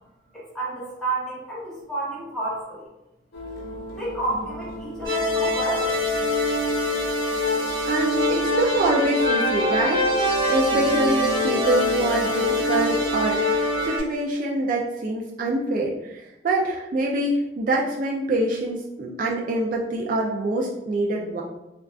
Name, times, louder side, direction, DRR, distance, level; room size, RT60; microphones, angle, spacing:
voice 1, 0.3-2.9 3.9-5.9, right 2 dB, 5° left, -7 dB, 1.0 m, -30 dB
sound 1, 3.3-13.9, left 1 dB, 65° left, 0.6 m, -37 dB
sound 2, 5.0-14.0, left 1 dB, 20° right, 1.0 m, -23 dB
voice 2, 7.9-10.1 10.5-21.4, right 2 dB, 50° right, -2 dB, 0.3 m, -25 dB
3.6 x 2.3 x 2.3 m, 0.97 s
head